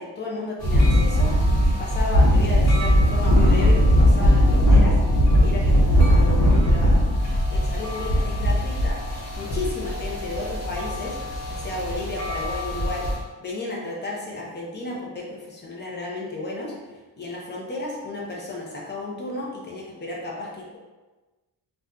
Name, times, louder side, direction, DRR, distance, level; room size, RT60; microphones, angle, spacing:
voice 1, 0.0-1.3 1.8-7.1 7.5-9.0 9.4-11.2 11.5-16.7 17.2-20.8, left 2 dB, 25° left, -4 dB, 0.6 m, -33 dB
sound 1, 0.6-13.2, equal, 60° left, 0.9 m, -19 dB
2.6 x 2.2 x 3.6 m, 1.2 s
wide cardioid pair, 175°, 42 cm